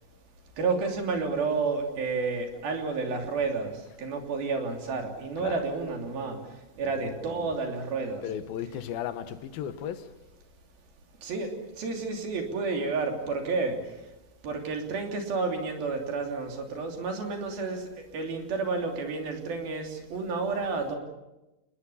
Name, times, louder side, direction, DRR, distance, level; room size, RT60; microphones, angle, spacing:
voice 1, 0.6-8.3 11.2-14.1 14.4-21.0, right 4 dB, 80° right, 5.0 m, -31 dB
voice 2, 6.8-7.6 8.2-10.1, left 9 dB, 85° left, 3.0 m, -36 dB
30.0 x 19.5 x 7.2 m
omnidirectional pair, 4.2 m